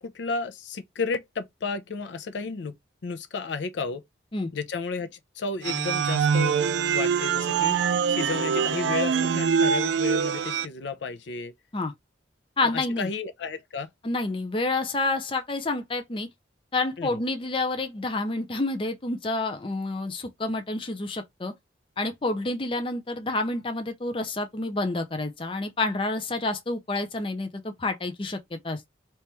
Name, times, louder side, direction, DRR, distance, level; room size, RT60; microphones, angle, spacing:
voice 1, 0.0-2.7 3.0-4.0 4.5-6.6 6.9-11.5 12.6-13.9 17.0-17.2, left 4 dB, 75° left, 0.5 m, -32 dB
sound 1, 5.6-10.7, right 6 dB, 75° right, 0.3 m, -24 dB
voice 2, 12.6-13.1 14.0-16.3 16.7-21.5 22.0-28.9, left 2 dB, 30° left, 0.5 m, -29 dB
3.0 x 3.0 x 3.3 m
head